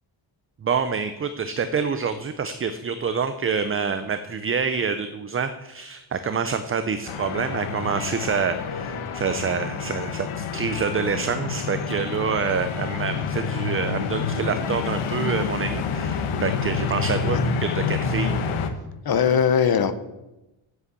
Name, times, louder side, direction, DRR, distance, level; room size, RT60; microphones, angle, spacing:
voice 1, 0.6-18.5, right 5 dB, 30° right, 10 dB, 0.4 m, -27 dB
sound 1, 7.1-18.7, left 5 dB, 85° left, 1.2 m, -28 dB
voice 2, 19.0-19.9, left 7 dB, 50° left, 12 dB, 0.8 m, -20 dB
8.0 x 7.7 x 8.3 m, 0.97 s
wide cardioid pair, 165°, 49 cm